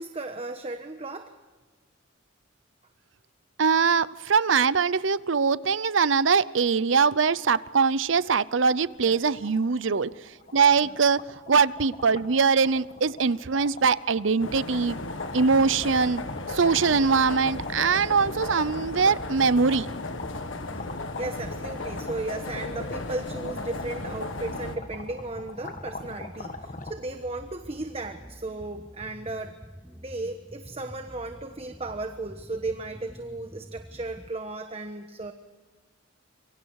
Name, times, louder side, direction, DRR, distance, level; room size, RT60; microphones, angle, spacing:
voice 1, 0.0-1.3 9.0-9.2 10.8-10.9 20.7-20.9 21.2-29.5 30.0-35.3, right 2 dB, 30° right, 6 dB, 1.2 m, -35 dB
voice 2, 3.6-10.1 10.5-11.2 11.5-15.0 15.3-16.2 16.5-19.9, right 5 dB, 70° right, 18 dB, 0.7 m, -22 dB
sound 1, 7.8-8.0 8.3-8.4 8.7-26.9, left 3 dB, 40° left, 1.8 m, -43 dB
sound 2, 14.4-24.8, left 2 dB, 70° left, 1.6 m, -35 dB
sound 3, 15.5-34.3, equal, 5° right, 0.8 m, -47 dB
26.5 x 24.0 x 4.8 m, 1.4 s
head